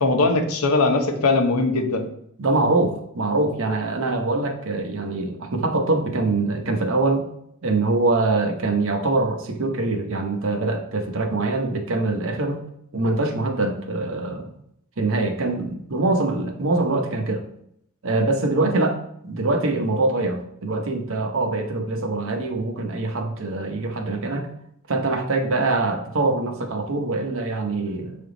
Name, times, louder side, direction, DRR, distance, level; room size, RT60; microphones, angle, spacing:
voice 1, 0.0-2.1, left 3 dB, 85° left, 6 dB, 0.8 m, -20 dB
voice 2, 2.4-7.3 7.6-12.6 12.9-14.5 15.0-17.4 18.0-19.0 19.2-24.5 24.9-28.2, right 2 dB, 60° right, 5 dB, 0.9 m, -23 dB
7.3 x 3.5 x 3.9 m, 0.72 s
head